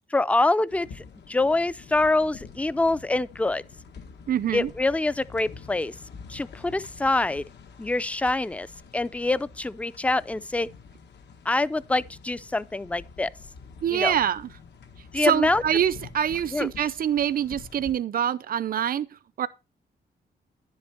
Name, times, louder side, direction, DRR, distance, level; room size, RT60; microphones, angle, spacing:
voice 1, 0.1-3.6 4.5-5.9 6.3-7.4 7.8-8.7 8.9-10.7 11.5-13.3 13.9-14.1 15.1-15.6 16.5-16.7, left 2 dB, 5° left, 0.4 m, -25 dB
sound 1, 0.7-17.9, left 5 dB, 80° left, 1.6 m, -47 dB
voice 2, 4.3-4.7 13.8-14.5 15.1-19.5, right 9 dB, 55° right, 0.6 m, -25 dB
10.5 x 7.3 x 4.4 m
cardioid pair, 105°, 17 cm